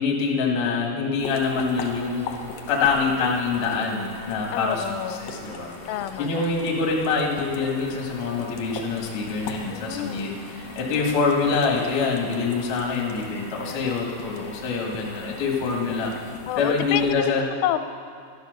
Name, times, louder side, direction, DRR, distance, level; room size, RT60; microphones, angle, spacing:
voice 1, 0.0-2.3 2.7-5.7 6.2-16.1 16.6-17.4, left 4 dB, 50° left, -1 dB, 1.6 m, -25 dB
Bird vocalization bird call bird song, 1.1-16.4, left 1 dB, 20° left, 1.9 m, -45 dB
sound 1, 1.2-17.1, left 5 dB, 70° left, 2.2 m, -41 dB
voice 2, 3.0-3.4 4.5-5.2 5.9-6.6 9.7-10.3 10.8-11.2 13.6-14.1 16.4-17.8, left 12 dB, 90° left, 11 dB, 3.1 m, -30 dB
13.0 x 11.5 x 6.5 m, 2.2 s
omnidirectional pair, 5.5 m